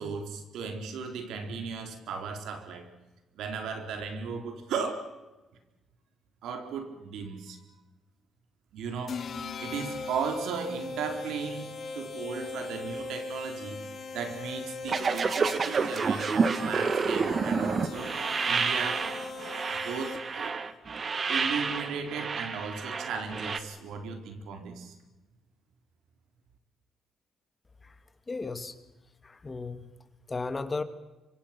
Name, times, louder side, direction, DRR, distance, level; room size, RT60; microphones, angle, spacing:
voice 1, 0.0-2.9 3.3-5.1 6.4-7.6 8.7-13.8 14.1-18.2 18.4-19.1 19.7-20.6 21.3-24.9, right 5 dB, 80° right, 6 dB, 4.1 m, -36 dB
sound 1, 9.1-20.5, left 3 dB, 55° left, 2.9 m, -39 dB
sound 2, 14.9-23.6, right 5 dB, 40° right, 1.8 m, -29 dB
voice 2, 28.3-28.8 29.2-29.9 30.3-30.8, left 3 dB, 25° left, 11 dB, 2.1 m, -35 dB
26.0 x 24.5 x 6.1 m, 1.1 s
cardioid pair, 90°, 0 cm